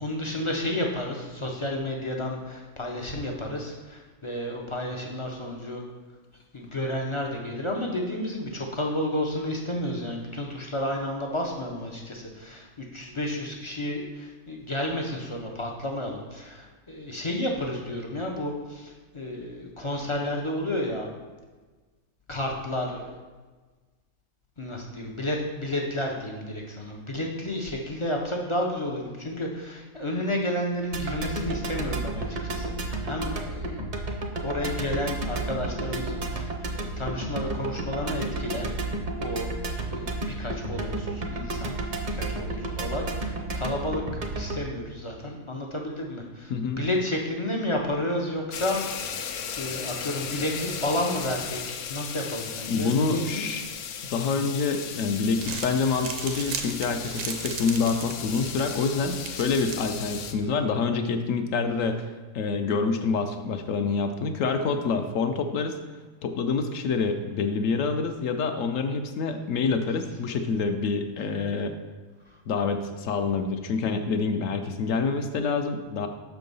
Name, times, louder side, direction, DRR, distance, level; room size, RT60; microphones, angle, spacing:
voice 1, 0.0-5.8 6.5-21.1 22.3-23.2 24.6-33.8 34.4-38.7 39.2-39.5 39.9-41.7 42.0-44.0 44.3-49.2 49.6-53.6 72.3-72.4, left 1 dB, 50° left, 0 dB, 0.3 m, -31 dB
sound 1, 30.9-44.6, right 2 dB, 45° right, 0.6 m, -32 dB
sound 2, 48.5-60.3, left 7 dB, 90° left, 1.1 m, -36 dB
voice 2, 52.7-53.6 54.1-62.0 62.3-65.8 66.2-71.8 72.5-76.1, left 4 dB, 70° left, 6 dB, 0.9 m, -27 dB
Crumpling crinkling, 55.2-60.4, right 6 dB, 65° right, 1.0 m, -38 dB
6.1 x 4.7 x 5.3 m, 1.3 s
omnidirectional pair, 1.5 m